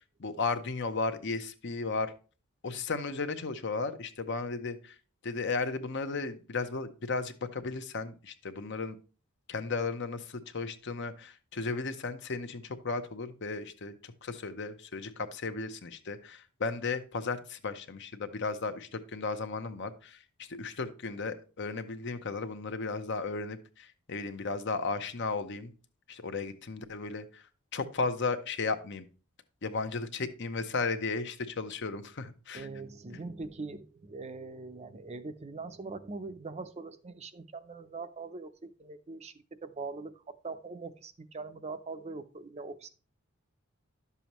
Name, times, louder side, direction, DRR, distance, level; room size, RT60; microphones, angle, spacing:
voice 1, 0.2-2.1 2.6-4.9 5.2-9.0 9.5-25.7 26.1-27.4 27.7-29.1 29.6-32.7, left 4 dB, 55° left, 10 dB, 0.8 m, -35 dB
voice 2, 32.5-39.3 39.6-42.9, right 3 dB, 30° right, 10 dB, 0.5 m, -42 dB
11.0 x 6.9 x 3.0 m, 0.36 s
head